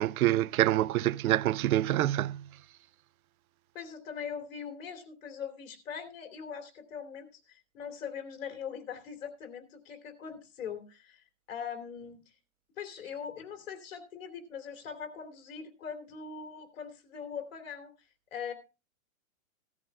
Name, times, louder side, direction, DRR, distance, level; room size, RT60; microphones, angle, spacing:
voice 1, 0.0-2.5, right 14 dB, 85° right, 0.6 m, -26 dB
voice 2, 3.7-12.2 12.8-17.9 18.3-18.5, left 7 dB, 65° left, 3.0 m, -41 dB
17.0 x 13.5 x 2.3 m
hypercardioid pair, 155°, 42 cm